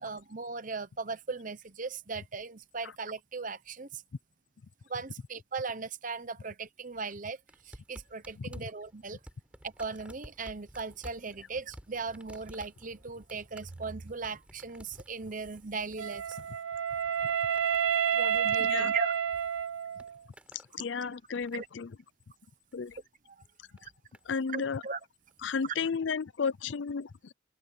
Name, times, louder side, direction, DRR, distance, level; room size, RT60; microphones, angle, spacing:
voice 1, 0.0-4.0 4.9-7.4 7.6-9.2 9.6-16.4 18.1-19.1 21.5-21.7 23.3-23.4 23.8-23.9 24.5-25.0, right 4 dB, 40° right, 1.0 m, -38 dB
sound 1, 7.5-19.4 19.7-20.7 21.1-21.8 22.7-23.0 23.8-24.4 25.3-25.4, equal, 5° right, 6.5 m, -53 dB
Wind instrument woodwind instrument, 16.0-20.2, right 8 dB, 85° right, 0.6 m, -29 dB
voice 2, 18.6-18.9 20.5-21.9 22.7-23.0 24.3-24.8 25.4-27.3, left 5 dB, 65° left, 0.5 m, -33 dB
head